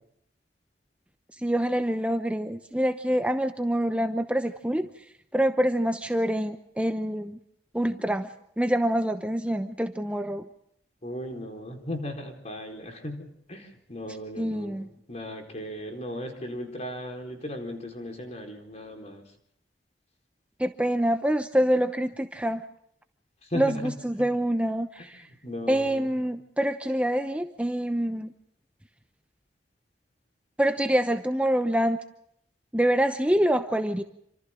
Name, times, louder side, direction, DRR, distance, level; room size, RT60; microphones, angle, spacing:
voice 1, 1.4-4.9 5.3-7.4 7.7-8.3 8.6-10.4 14.4-14.9 20.6-22.6 23.5-25.2 25.7-28.3 30.6-32.0 32.7-34.0, equal, 5° right, 8 dB, 0.8 m, -26 dB
voice 2, 11.0-19.2 23.5-24.3 25.1-26.1, left 1 dB, 40° left, 3 dB, 4.4 m, -37 dB
28.0 x 26.5 x 3.8 m, 0.73 s
head